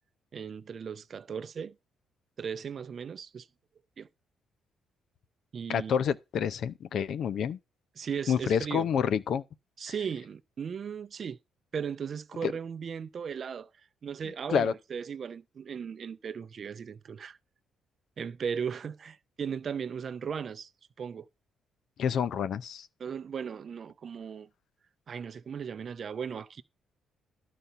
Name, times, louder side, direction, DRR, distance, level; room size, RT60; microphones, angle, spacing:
voice 1, 0.3-1.7 2.4-3.5 4.0-4.1 5.5-5.9 8.0-8.9 9.8-11.4 11.7-13.7 14.0-17.4 18.2-20.7 21.0-21.3 23.0-24.5 25.1-26.6, right 7 dB, 50° right, 0.5 m, -37 dB
voice 2, 5.7-7.6 8.3-9.4 12.4-12.5 14.5-14.7 22.0-22.9, left 7 dB, 65° left, 0.5 m, -28 dB
11.5 x 4.0 x 5.6 m
cardioid pair, 90°, 0 cm